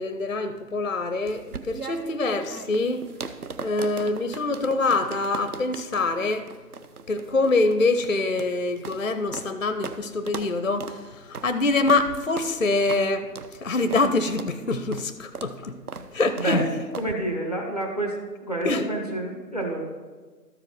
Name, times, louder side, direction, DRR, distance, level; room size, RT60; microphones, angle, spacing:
voice 1, 0.0-3.0 3.6-6.5 7.1-13.3 13.6-15.7 16.1-16.6 18.6-18.9, left 3 dB, 50° left, 10 dB, 0.5 m, -25 dB
sound 1, 1.3-9.5 9.8-10.0 10.3-10.5 10.8-11.0 11.3-11.5 11.9-12.0 12.4-12.5 12.9-13.0 13.4-13.5 13.9-14.1 14.4-14.5 14.9-15.1 15.4-15.5 15.9-16.1 16.4-16.5 16.9-17.1, right 5 dB, 60° right, 0.7 m, -38 dB
voice 2, 16.4-19.8, right 1 dB, 25° right, 2 dB, 0.8 m, -29 dB
13.0 x 4.9 x 4.5 m, 1.4 s
figure-of-eight pair, 160°, 49 cm